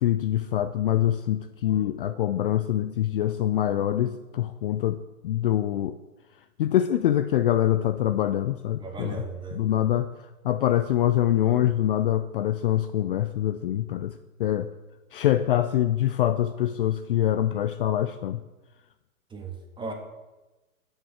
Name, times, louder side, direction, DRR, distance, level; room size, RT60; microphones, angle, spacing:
voice 1, 0.0-6.0 6.6-9.2 9.5-14.7 15.1-18.4, left 12 dB, 40° left, 11 dB, 0.4 m, -25 dB
voice 2, 8.8-9.6 19.3-19.9, right 4 dB, 10° right, 3 dB, 1.5 m, -36 dB
9.3 x 7.6 x 6.4 m, 1.1 s
figure-of-eight pair, 115°, 42 cm